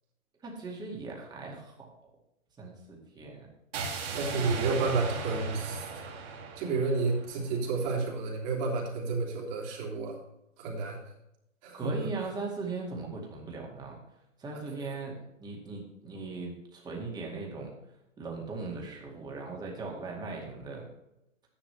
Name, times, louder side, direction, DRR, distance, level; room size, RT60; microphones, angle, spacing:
voice 1, 0.4-2.1 2.6-3.5 11.7-14.0 14.4-15.1 15.4-17.7 18.2-20.9, right 3 dB, 10° right, -1 dB, 2.1 m, -39 dB
sound 1, 3.7-7.8, right 4 dB, 50° right, 2.7 m, -37 dB
voice 2, 4.1-5.9 6.5-10.2 10.6-11.0 11.6-12.1, right 4 dB, 35° right, -2 dB, 3.1 m, -31 dB
12.5 x 10.5 x 3.3 m, 0.87 s
hypercardioid pair, 145°, 40 cm